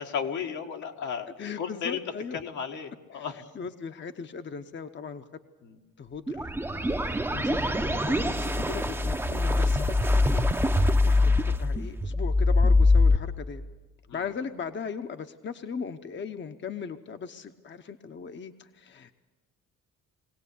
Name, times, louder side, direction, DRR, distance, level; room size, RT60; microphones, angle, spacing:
voice 1, 0.0-1.3 1.6-2.0 2.3-3.5 5.6-5.8 14.1-14.2, left 7 dB, 75° left, 2 dB, 1.8 m, -34 dB
voice 2, 1.4-2.4 3.1-3.3 3.5-5.3 6.0-13.6 14.1-19.2, left 6 dB, 40° left, 7 dB, 0.9 m, -38 dB
sound 1, 6.3-13.2, left 2 dB, 10° right, 0.7 m, -23 dB
22.5 x 17.0 x 8.5 m, 1.2 s
cardioid pair, 90°, 30 cm